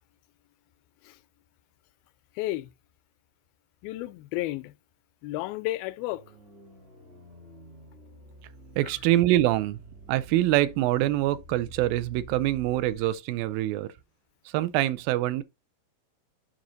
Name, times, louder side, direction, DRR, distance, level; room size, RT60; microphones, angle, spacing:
voice 1, 2.4-2.7 3.8-4.7 5.2-6.2, left 17 dB, 90° left, 2.4 m, -32 dB
sound 1, 6.1-13.1, right 2 dB, 40° right, 0.8 m, -49 dB
voice 2, 8.8-9.8 10.1-13.9 14.5-15.4, right 15 dB, 85° right, 2.4 m, -25 dB
7.9 x 5.6 x 3.9 m
omnidirectional pair, 4.2 m